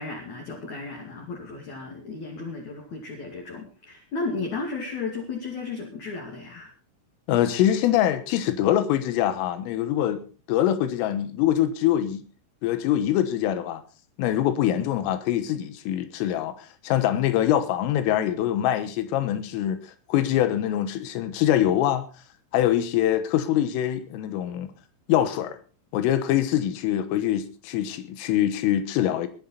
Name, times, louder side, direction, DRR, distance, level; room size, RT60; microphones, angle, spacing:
voice 1, 0.0-6.7, left 3 dB, 45° left, 3.0 m, -34 dB
voice 2, 7.3-12.2 12.6-13.8 14.2-19.8 20.1-22.1 22.5-24.7 25.1-25.6 25.9-29.3, left 11 dB, 85° left, 3.9 m, -24 dB
20.0 x 11.5 x 4.0 m
omnidirectional pair, 5.7 m